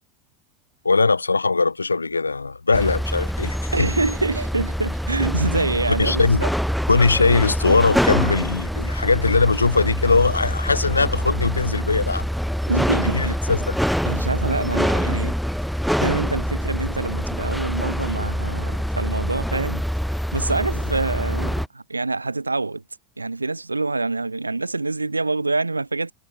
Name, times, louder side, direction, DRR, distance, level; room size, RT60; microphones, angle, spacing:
voice 1, 0.8-3.9 6.0-6.4 6.9-12.3 13.1-13.8, left 4 dB, 80° left, 0.3 m, -20 dB
sound 1, 2.7-21.7, equal, ahead, 0.3 m, -25 dB
voice 2, 3.7-6.5 12.7-13.4 14.0-15.4 16.0-19.8 20.3-22.8 23.2-26.1, right 3 dB, 85° right, 1.4 m, -25 dB
figure-of-eight pair, 80°, 0 cm